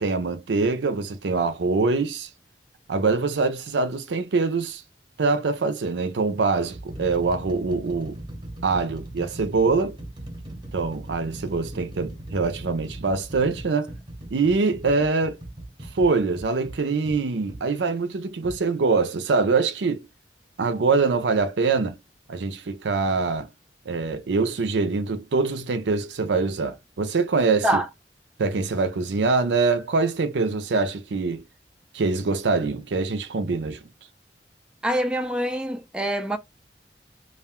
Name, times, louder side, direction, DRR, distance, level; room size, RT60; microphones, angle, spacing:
voice 1, 0.0-2.3 2.9-4.8 5.2-8.2 8.6-10.0 10.7-13.9 14.3-15.4 15.9-20.1 20.6-22.0 22.3-23.5 23.9-27.8 28.4-31.4 31.9-33.9, right 4 dB, 85° right, 0.5 m, -24 dB
sound 1, 4.4-4.7 5.6-5.7 6.4-17.7 18.4-18.6, right 1 dB, 25° right, 0.8 m, -39 dB
voice 2, 34.8-36.4, right 1 dB, 5° right, 0.3 m, -25 dB
2.4 x 2.2 x 3.5 m
head